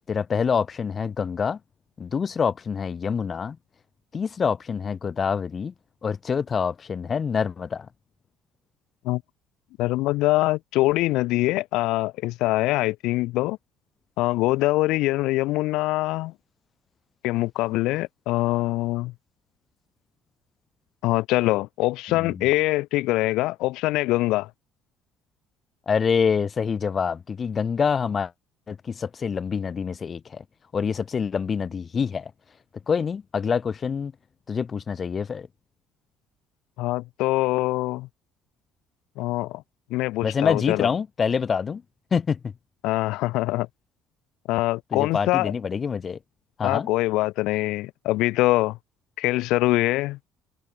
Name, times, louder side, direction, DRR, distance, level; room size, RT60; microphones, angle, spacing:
voice 1, 0.1-1.6 2.0-3.6 4.1-5.7 6.0-7.9 22.2-22.3 25.9-28.3 28.7-30.4 30.7-32.3 32.9-34.1 34.5-35.5 40.2-41.8 42.1-42.4 44.9-46.2 46.6-46.9, left 6 dB, 35° left, 7.9 m, -26 dB
voice 2, 9.8-13.6 14.2-16.3 17.2-19.1 21.0-24.5 36.8-38.1 39.2-39.6 39.9-40.9 42.8-43.7 44.5-45.5 46.6-48.8 49.2-50.2, left 19 dB, 80° left, 6.8 m, -24 dB
cardioid pair, 105°, 0 cm